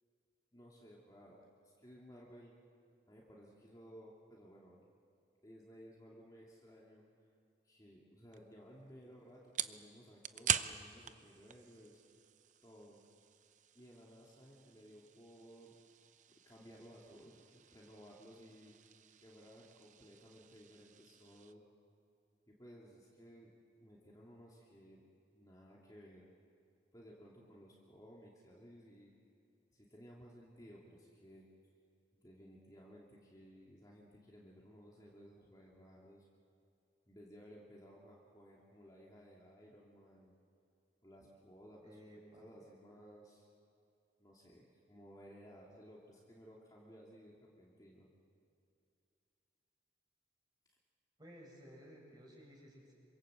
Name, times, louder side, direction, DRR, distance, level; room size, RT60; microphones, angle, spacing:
voice 1, 0.5-2.5 3.1-4.9 5.4-7.0 7.6-12.0 12.6-13.0 13.7-15.8 16.4-18.7 19.2-21.7 22.5-23.5 23.8-25.1 25.3-26.3 26.9-29.1 29.7-31.5 32.2-36.3 37.1-40.3 41.0-42.0 42.4-43.5 44.2-48.1, equal, 20° left, -4 dB, 2.6 m, -58 dB
sound 1, 8.3-21.5, right 9 dB, 40° right, 0.7 m, -45 dB
voice 2, 41.8-42.4 51.2-52.9, equal, 20° right, -1 dB, 6.5 m, -56 dB
27.0 x 25.0 x 7.8 m, 2.5 s
head